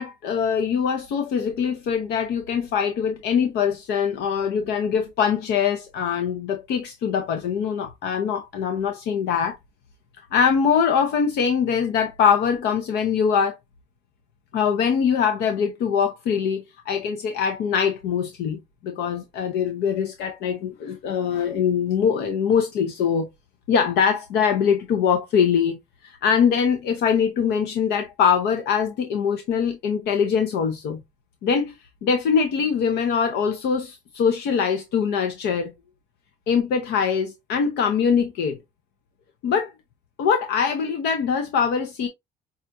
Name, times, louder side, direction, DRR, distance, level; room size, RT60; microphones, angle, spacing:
voice 1, 0.0-9.6 10.2-13.6 14.5-23.3 23.7-31.0 31.4-31.8 32.0-35.7 36.5-38.6 39.4-39.7 40.2-42.1, left 7 dB, 80° left, 0.7 m, -23 dB
5.5 x 2.4 x 2.5 m
cardioid pair, 110°, 17 cm